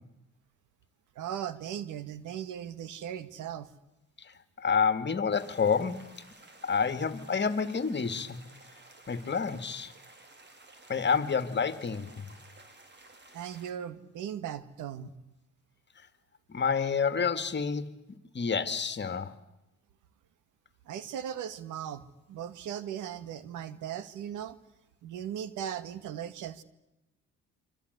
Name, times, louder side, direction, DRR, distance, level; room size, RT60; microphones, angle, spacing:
voice 1, 1.2-3.7 13.3-15.1 20.9-22.0 22.3-24.6 25.0-26.6, right 9 dB, 85° right, 14 dB, 2.1 m, -38 dB
voice 2, 4.6-6.1 6.6-8.4 9.1-9.9 10.9-12.3 16.5-19.3, left 6 dB, 35° left, 12 dB, 2.4 m, -29 dB
sound 1, 5.3-13.7, right 2 dB, 35° right, 5.4 m, -55 dB
27.0 x 26.0 x 8.3 m, 0.93 s
cardioid pair, 90°, 30 cm